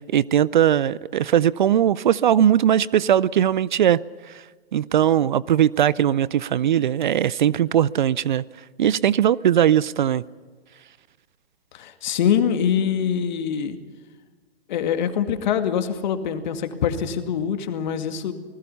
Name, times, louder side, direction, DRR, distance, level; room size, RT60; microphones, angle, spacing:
voice 1, 0.1-4.0 4.7-8.4 8.8-10.2, right 10 dB, 50° right, 0.6 m, -19 dB
voice 2, 11.7-13.8 14.7-18.3, left 8 dB, 45° left, 2.2 m, -24 dB
27.5 x 20.0 x 5.6 m
figure-of-eight pair, 120°, 31 cm